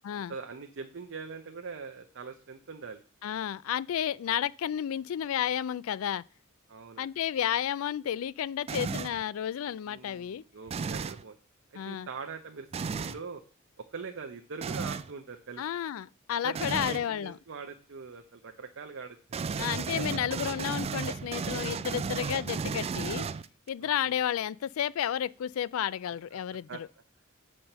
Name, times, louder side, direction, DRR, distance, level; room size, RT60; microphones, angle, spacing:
voice 1, 0.3-3.0 4.3-4.4 6.7-7.1 9.9-11.4 11.9-12.7 12.9-13.4 13.8-15.6 16.4-19.2 20.0-20.3 20.9-21.0 23.8-24.1 26.7-26.8, right 5 dB, 60° right, 0.7 m, -42 dB
voice 2, 3.2-6.2 7.0-10.4 11.7-12.1 15.6-17.4 19.6-23.3 23.7-26.9, left 9 dB, 70° left, 0.3 m, -32 dB
sound 1, 8.7-9.2 10.7-11.2 12.7-13.2 14.6-15.1 16.6-17.1 19.3-23.7, right 5 dB, 30° right, 0.3 m, -34 dB
7.5 x 4.3 x 6.6 m
head